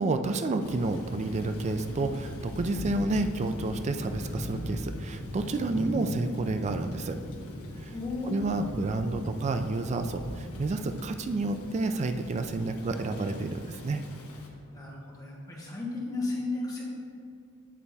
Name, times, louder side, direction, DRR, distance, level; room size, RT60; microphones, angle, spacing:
voice 1, 0.0-7.2 7.8-7.9 8.3-14.0, right 2 dB, 30° right, 8 dB, 0.3 m, -30 dB
Thunder / Rain, 0.6-14.5, equal, 80° left, 1.1 m, -39 dB
voice 2, 7.9-8.3 14.7-16.8, left 3 dB, 15° left, -5 dB, 1.4 m, -34 dB
9.4 x 3.4 x 4.1 m, 2.5 s
head